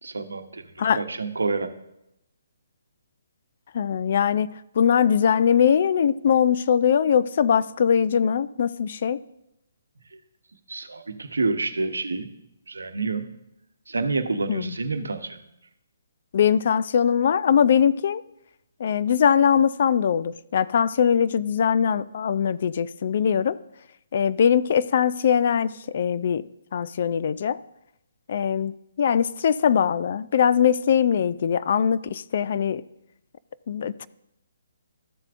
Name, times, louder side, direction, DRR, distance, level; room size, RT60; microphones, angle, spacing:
voice 1, 0.0-0.7 0.9-1.7 10.1-10.2 10.7-12.3 12.7-13.3 13.9-15.4, right 3 dB, 85° right, 8 dB, 0.9 m, -28 dB
voice 2, 3.7-9.2 14.5-14.7 16.3-18.2 18.8-23.6 24.1-26.4 26.7-27.6 28.3-32.8 33.7-34.1, left 8 dB, 55° left, 17 dB, 0.4 m, -21 dB
13.5 x 7.4 x 2.5 m, 0.84 s
hypercardioid pair, 145°, 0 cm